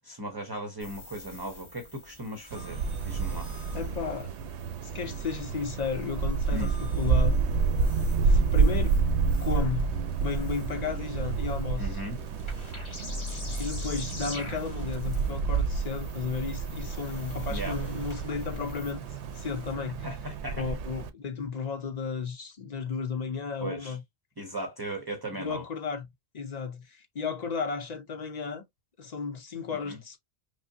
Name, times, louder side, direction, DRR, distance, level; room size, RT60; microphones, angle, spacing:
voice 1, 0.0-3.5 6.5-6.8 11.8-12.2 17.5-17.8 20.0-20.7 23.6-24.0 24.4-25.6 29.7-30.0, right 1 dB, 25° right, 0.6 m, -37 dB
sound 1, 0.8-19.7, left 2 dB, 25° left, 1.3 m, -44 dB
Wind, 2.5-21.1, right 4 dB, 90° right, 0.9 m, -29 dB
voice 2, 3.7-4.3 4.8-7.4 8.2-9.0 9.4-9.9 10.2-12.0 13.6-19.0 19.3-20.1 20.6-24.0 25.4-26.1 26.3-28.6 29.0-30.2, left 5 dB, 45° left, 0.6 m, -34 dB
5.2 x 2.0 x 2.7 m
omnidirectional pair, 1.1 m